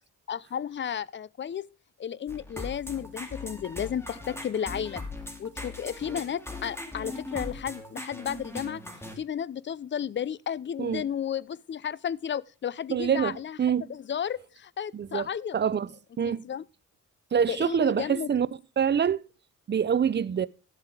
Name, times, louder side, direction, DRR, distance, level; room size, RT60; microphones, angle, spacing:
voice 1, 0.3-1.7 2.0-5.0 5.4-8.8 9.2-13.6 13.9-15.6 16.2-16.6 17.5-18.3, left 8 dB, 35° left, 0.5 m, -33 dB
sound 1, 2.3-9.2, left 2 dB, 10° left, 2.3 m, -39 dB
voice 2, 12.9-13.8 14.9-15.3 15.5-15.9 16.2-16.4 17.3-18.5 18.8-19.2 19.7-20.5, right 7 dB, 35° right, 0.6 m, -25 dB
11.5 x 7.5 x 4.7 m
cardioid pair, 100°, 31 cm